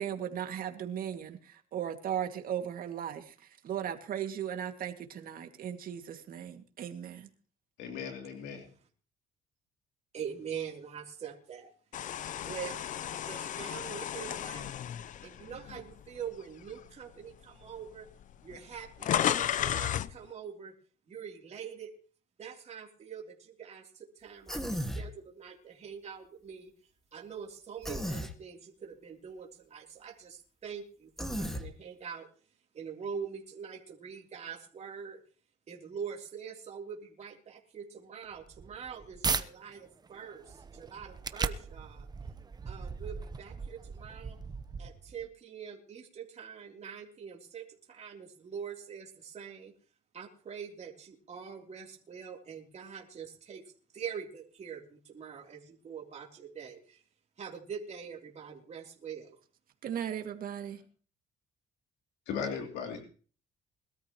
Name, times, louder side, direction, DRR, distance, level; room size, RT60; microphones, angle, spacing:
voice 1, 0.0-3.3 3.6-7.3 59.8-60.8, right 9 dB, 60° right, 2.2 m, -37 dB
voice 2, 7.8-8.6 62.3-63.0, left 6 dB, 85° left, 3.0 m, -37 dB
voice 3, 10.1-11.7 12.4-14.7 15.2-18.1 18.4-20.7 21.1-21.9 22.4-26.7 27.1-32.3 32.7-35.2 35.7-42.1 42.6-44.4 44.8-49.7 50.1-53.6 53.9-57.0 57.4-59.4, right 7 dB, 40° right, 3.3 m, -44 dB
sound 1, 11.9-16.2 16.7-16.9 17.8-17.9 18.1-20.2, left 10 dB, 50° left, 0.6 m, -33 dB
Human voice, 24.5-25.1 27.8-28.3 31.2-31.7, equal, ahead, 1.9 m, -34 dB
sound 2, 38.3-39.5 40.0-45.3, right 5 dB, 25° right, 0.9 m, -37 dB
22.0 x 13.0 x 3.1 m
cardioid pair, 110°, 17 cm